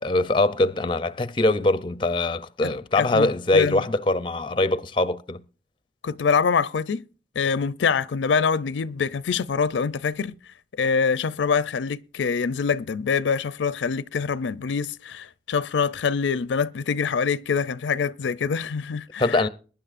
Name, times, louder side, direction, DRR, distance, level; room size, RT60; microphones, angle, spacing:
voice 1, 0.0-5.4 19.2-19.5, left 2 dB, 25° left, 0.5 m, -23 dB
voice 2, 3.0-3.8 6.0-7.0 7.4-10.3 10.8-19.4, left 5 dB, 85° left, 0.4 m, -25 dB
21.5 x 10.5 x 2.5 m
head